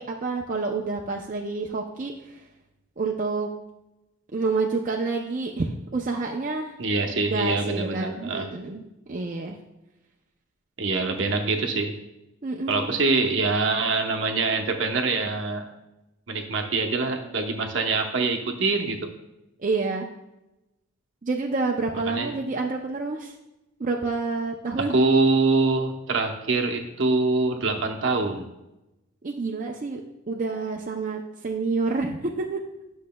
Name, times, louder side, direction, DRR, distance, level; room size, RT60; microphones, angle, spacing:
voice 1, 0.0-2.4 3.0-3.5 4.3-6.7 7.3-8.8 9.1-9.6 12.4-13.0 19.6-20.0 21.2-23.3 23.8-25.0 29.2-30.0 30.3-32.6, right 3 dB, 40° right, 0 dB, 0.5 m, -28 dB
voice 2, 6.8-8.5 10.8-11.9 12.7-15.7 16.3-19.1 22.1-22.3 24.8-28.5, right 3 dB, 65° right, 4 dB, 0.8 m, -24 dB
10.5 x 6.3 x 2.2 m, 0.95 s
head